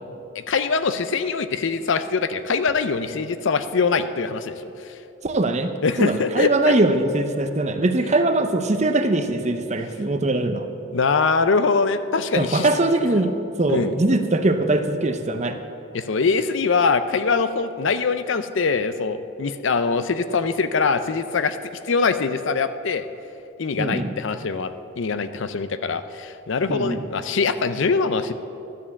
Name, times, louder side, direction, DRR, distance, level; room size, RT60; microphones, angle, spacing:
voice 1, 0.5-4.6 5.8-6.7 10.0-10.1 10.9-12.7 13.7-13.9 15.9-21.6 21.9-23.0 23.6-24.7 25.0-28.3, left 4 dB, 65° left, 11 dB, 0.5 m, -23 dB
voice 2, 5.2-10.6 12.3-15.6 23.8-24.1 26.7-27.0, right 2 dB, 35° right, 7 dB, 0.6 m, -21 dB
12.5 x 7.3 x 7.0 m, 2.9 s
head